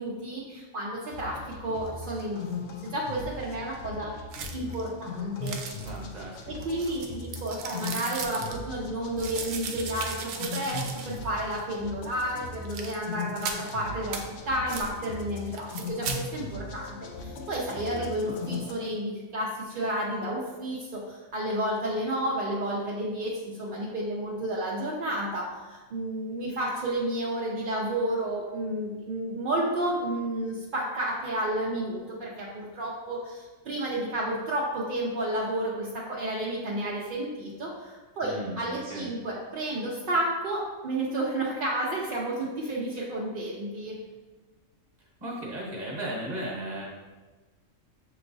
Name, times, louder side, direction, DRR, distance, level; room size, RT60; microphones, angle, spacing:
voice 1, 0.0-2.4 2.8-4.1 4.5-5.6 6.5-14.2 14.5-44.0, right 1 dB, 50° right, -5 dB, 0.6 m, -31 dB
sound 1, 1.1-18.7, left 3 dB, 65° left, 0.7 m, -39 dB
sound 2, 4.3-4.8 5.4-6.1 6.6-8.6 9.2-11.3 11.6-11.7 12.6-13.0 13.4-13.7 14.1-14.2 14.7-14.9 15.5-16.2, right 6 dB, 85° right, 1.0 m, -37 dB
voice 2, 5.8-6.5 18.0-18.3 38.2-39.1 45.2-46.9, right 1 dB, 35° right, -3 dB, 1.2 m, -36 dB
6.8 x 3.0 x 2.6 m, 1.3 s
omnidirectional pair, 1.4 m